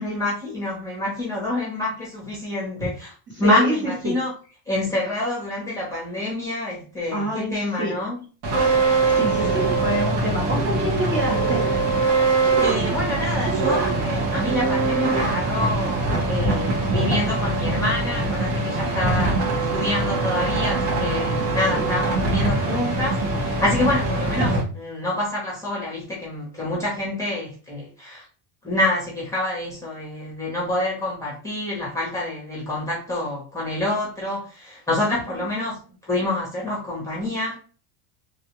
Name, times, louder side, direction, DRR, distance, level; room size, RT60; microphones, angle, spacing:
voice 1, 0.0-4.3 4.7-8.2 9.4-9.5 12.6-28.2 28.6-37.5, left 1 dB, 5° left, 0.9 m, -27 dB
voice 2, 3.4-4.2 7.1-8.0 9.1-11.6 21.7-21.9 35.3-35.5, right 1 dB, 25° right, 1.0 m, -27 dB
sound 1, 8.4-24.6, right 3 dB, 85° right, 1.4 m, -22 dB
sound 2, 9.3-9.8 10.5-11.0 11.3-11.8 12.5-12.9 13.4-14.0, right 7 dB, 65° right, 0.9 m, -31 dB
3.2 x 2.4 x 3.0 m
cardioid pair, 155°, 50 cm